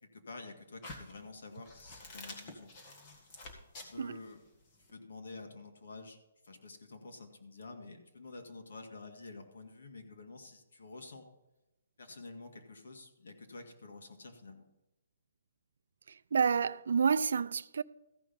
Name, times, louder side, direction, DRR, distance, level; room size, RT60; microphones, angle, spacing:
voice 1, 0.0-2.7 3.3-4.4 4.9-6.2 6.4-11.3 12.0-14.7, left 3 dB, 75° left, 2.0 m, -49 dB
sound 1, 0.8-4.9, left 2 dB, 30° left, 1.8 m, -49 dB
voice 2, 16.3-17.8, right 6 dB, 70° right, 0.4 m, -29 dB
14.0 x 5.8 x 5.4 m
hypercardioid pair, 165°, 0 cm